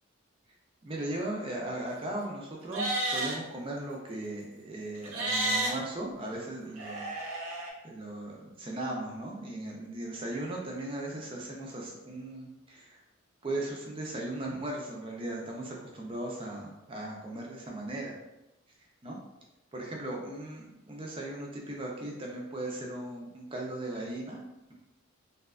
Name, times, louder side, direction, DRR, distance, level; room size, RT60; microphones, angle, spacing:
voice 1, 0.8-7.1 7.4-7.6 7.8-13.0 13.4-18.2 19.0-19.2 19.7-24.4, right 1 dB, 25° right, -1 dB, 0.4 m, -37 dB
Livestock farm animals working animals, 2.6-3.4 5.0-5.7 6.8-7.7, right 2 dB, 80° right, 0.5 m, -31 dB
2.6 x 2.2 x 2.3 m, 0.95 s
head